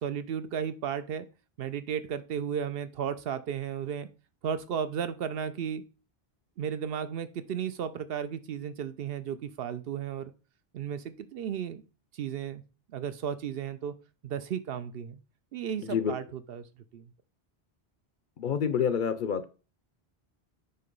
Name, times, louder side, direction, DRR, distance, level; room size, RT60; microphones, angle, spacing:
voice 1, 0.0-1.3 1.6-4.1 4.4-5.8 6.6-10.3 10.7-11.0 11.3-11.8 12.1-12.6 12.9-13.9 14.2-15.2 15.5-16.7 16.9-17.0, right 8 dB, 70° right, 11 dB, 0.8 m, -34 dB
voice 2, 15.8-16.1 18.4-19.5, left 7 dB, 60° left, 12 dB, 0.6 m, -28 dB
6.7 x 2.9 x 5.3 m, 0.33 s
omnidirectional pair, 1.1 m